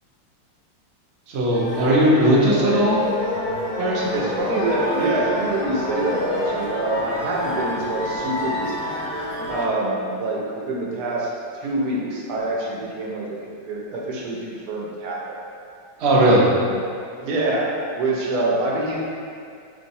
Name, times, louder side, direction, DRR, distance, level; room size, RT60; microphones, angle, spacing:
voice 1, 1.3-3.0 3.8-4.1 16.0-16.4, right 1 dB, 85° right, -5 dB, 0.5 m, -18 dB
sound 1, 1.5-9.7, left 1 dB, 80° left, 1.4 m, -28 dB
voice 2, 4.1-9.0 9.5-11.3 11.6-13.4 13.7-15.4 16.1-16.5 17.2-19.0, right 2 dB, 70° right, -3 dB, 1.0 m, -25 dB
4.0 x 3.1 x 2.6 m, 2.3 s
omnidirectional pair, 2.0 m